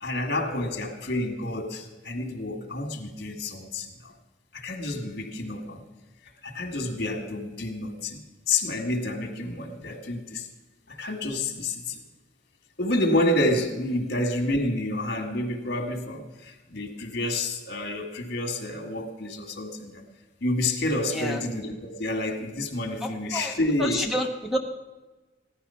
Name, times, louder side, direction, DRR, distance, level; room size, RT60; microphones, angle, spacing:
voice 1, 0.0-4.1 4.5-5.8 6.4-8.2 8.5-10.5 11.0-12.0 12.8-20.0 20.4-24.0, left 1 dB, 60° left, 5 dB, 1.9 m, -29 dB
voice 2, 21.1-21.4 23.0-24.6, left 1 dB, ahead, 2 dB, 1.0 m, -30 dB
15.0 x 11.5 x 5.7 m, 1.2 s
head